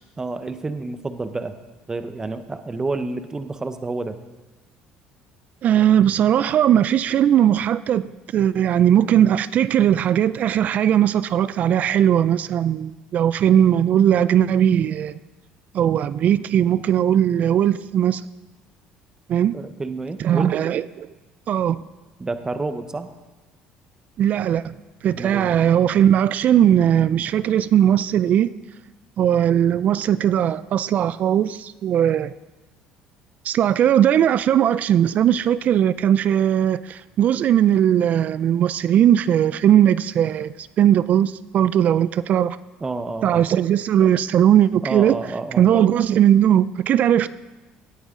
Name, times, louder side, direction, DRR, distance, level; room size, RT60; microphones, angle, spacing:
voice 1, 0.2-1.6 1.9-4.2 19.5-20.6 22.2-23.1 25.2-25.5 42.8-43.5 44.8-45.7, right 3 dB, 20° right, 0.9 m, -29 dB
voice 2, 5.6-15.2 15.7-18.2 19.3-19.5 20.2-21.1 21.5-21.8 24.2-24.7 25.0-28.5 29.2-32.3 33.4-42.6 43.2-45.1 45.6-47.3, right 10 dB, 50° right, 0.3 m, -18 dB
17.0 x 9.3 x 3.7 m
cardioid pair, 105°, 3 cm